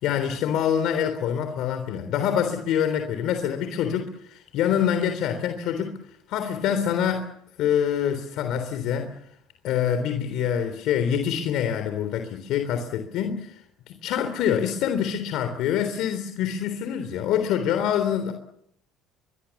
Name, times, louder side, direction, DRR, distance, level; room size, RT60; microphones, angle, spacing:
voice 1, 0.0-5.9 6.3-7.2 7.6-9.1 9.6-13.6 13.9-18.3, left 9 dB, 70° left, 7 dB, 3.5 m, -25 dB
23.5 x 23.0 x 7.3 m, 0.73 s
cardioid pair, 110°, 0 cm